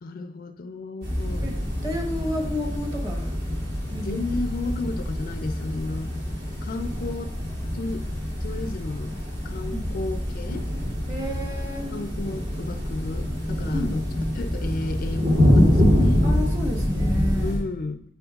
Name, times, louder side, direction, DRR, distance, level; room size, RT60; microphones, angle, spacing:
voice 1, 0.0-1.5 4.0-6.1 6.6-7.4 7.7-9.1 9.4-10.7 11.9-14.0 14.3-16.3 17.3-18.0, left 3 dB, 50° left, 9 dB, 0.4 m, -33 dB
sound 1, 1.0-17.6, equal, 65° right, 3.0 m, -25 dB
voice 2, 1.8-3.3 3.9-4.2 9.7-9.9 11.1-11.9 13.7-14.0 16.2-17.5, left 1 dB, 20° right, 2 dB, 1.2 m, -31 dB
9.1 x 7.8 x 2.4 m, 0.73 s
head